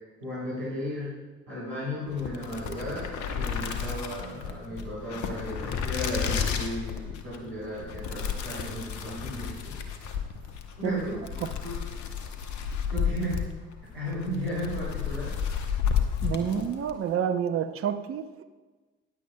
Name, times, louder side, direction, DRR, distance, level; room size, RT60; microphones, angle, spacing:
voice 1, 0.2-1.2 1.5-9.8 10.8-11.2 11.6-11.9 12.9-13.5 13.9-15.3, equal, 70° right, -10 dB, 3.5 m, -34 dB
sound 1, 2.1-17.0, left 7 dB, 60° left, 1.0 m, -32 dB
voice 2, 16.2-18.4, right 8 dB, 40° right, 9 dB, 0.7 m, -29 dB
15.0 x 10.0 x 2.3 m, 1.3 s
figure-of-eight pair, 45°, 33 cm